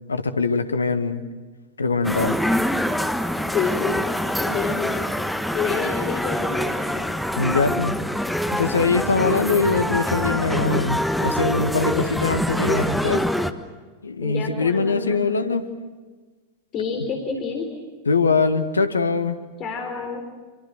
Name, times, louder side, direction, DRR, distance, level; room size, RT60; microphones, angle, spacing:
voice 1, 0.1-1.2 1.8-2.4 7.4-8.0 8.5-13.2 14.0-15.7 18.1-19.4, left 4 dB, 75° left, 10 dB, 1.7 m, -22 dB
sound 1, 2.0-13.5, equal, ahead, 1.4 m, -25 dB
voice 2, 3.5-4.1 4.4-5.1 5.5-7.0 14.2-15.2 16.7-17.7 19.6-20.2, left 5 dB, 35° left, 3 dB, 3.9 m, -28 dB
27.5 x 26.5 x 7.7 m, 1.3 s
figure-of-eight pair, 90°, 0 cm